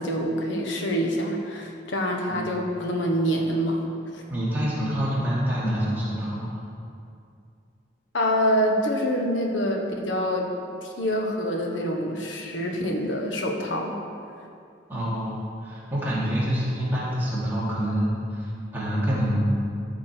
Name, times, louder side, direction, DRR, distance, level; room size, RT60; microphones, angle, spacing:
voice 1, 0.0-3.8 4.1-4.2 8.1-10.5 10.8-14.0, equal, 85° left, 1 dB, 1.3 m, -26 dB
voice 2, 4.3-6.4 14.9-19.4, equal, 10° right, -9 dB, 2.7 m, -27 dB
14.0 x 7.0 x 4.5 m, 2.5 s
head